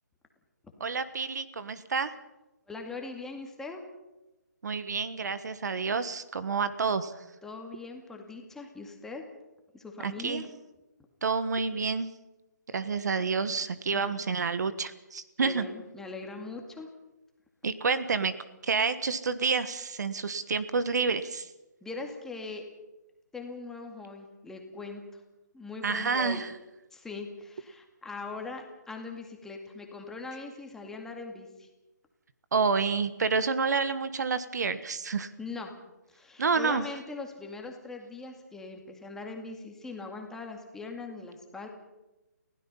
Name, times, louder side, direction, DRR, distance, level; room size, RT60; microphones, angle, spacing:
voice 1, 0.8-2.1 4.6-7.2 10.0-10.4 11.2-12.1 12.7-15.7 17.6-18.4 18.6-21.5 25.8-26.5 32.5-35.3 36.4-36.8, right 5 dB, 65° right, 13 dB, 1.4 m, -29 dB
voice 2, 2.7-3.9 7.4-9.3 9.7-10.5 13.9-14.0 15.4-16.9 21.8-22.7 23.3-25.0 25.5-26.4 26.9-31.7 35.4-35.7 36.1-41.7, left 3 dB, 5° left, 2 dB, 2.1 m, -41 dB
30.0 x 16.0 x 5.6 m, 1.0 s
hypercardioid pair, 155°, 10 cm